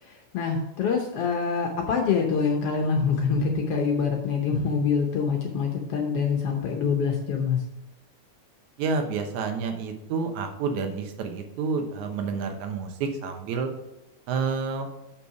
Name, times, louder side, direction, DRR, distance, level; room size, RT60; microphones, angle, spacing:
voice 1, 0.0-7.6, left 5 dB, 70° left, 1 dB, 1.5 m, -25 dB
voice 2, 8.8-13.7 14.3-14.9, right 5 dB, 75° right, 5 dB, 2.3 m, -29 dB
7.0 x 5.9 x 4.8 m, 0.96 s
omnidirectional pair, 3.5 m